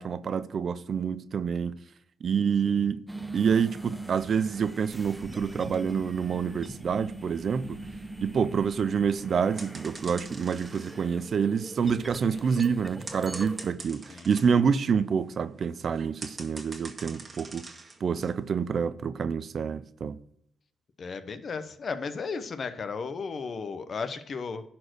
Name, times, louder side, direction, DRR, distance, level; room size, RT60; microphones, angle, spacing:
voice 1, 0.0-1.7 2.2-3.1 3.3-7.8 8.2-17.6 18.0-20.2, right 6 dB, 50° right, 0.5 m, -27 dB
sound 1, 3.1-13.7, right 1 dB, 5° right, 0.7 m, -42 dB
sound 2, 9.6-14.6 15.2-15.3 15.5-18.9, right 3 dB, 25° right, 1.6 m, -44 dB
voice 2, 12.3-12.6 14.1-14.3 21.0-24.6, left 5 dB, 45° left, 1.0 m, -35 dB
11.0 x 4.5 x 6.3 m
cardioid pair, 90°, 0 cm